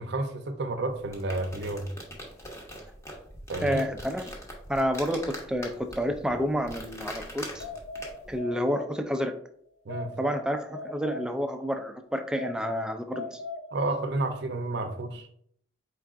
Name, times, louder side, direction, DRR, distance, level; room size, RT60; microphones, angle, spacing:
voice 1, 0.0-1.9 3.5-3.8 9.9-10.1 13.7-15.3, right 2 dB, 65° right, 0.6 m, -31 dB
sound 1, 0.9-8.4, equal, 15° left, 0.8 m, -43 dB
voice 2, 3.6-4.3 4.7-7.7 8.3-9.3 10.2-13.4, equal, 5° right, 0.3 m, -29 dB
sound 2, 7.6-9.4 9.9-11.8 12.3-14.2, left 3 dB, 85° left, 0.5 m, -40 dB
4.5 x 3.6 x 2.4 m
head